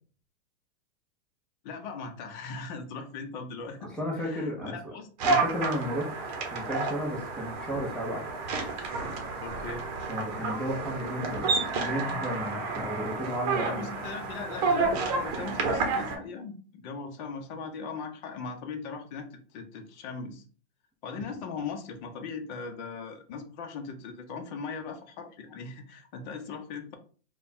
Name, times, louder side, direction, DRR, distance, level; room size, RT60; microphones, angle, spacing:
voice 1, 1.6-5.1 9.4-9.9 13.6-20.4 21.0-27.0, left 5 dB, 40° left, 4 dB, 0.9 m, -39 dB
voice 2, 4.0-4.9 5.2-6.1 6.5-8.3 10.1-13.8, equal, ahead, -2 dB, 0.8 m, -33 dB
sound 1, 5.2-16.2, right 3 dB, 40° right, 0.9 m, -30 dB
3.4 x 2.4 x 4.2 m, 0.40 s
supercardioid pair, 155°, 34 cm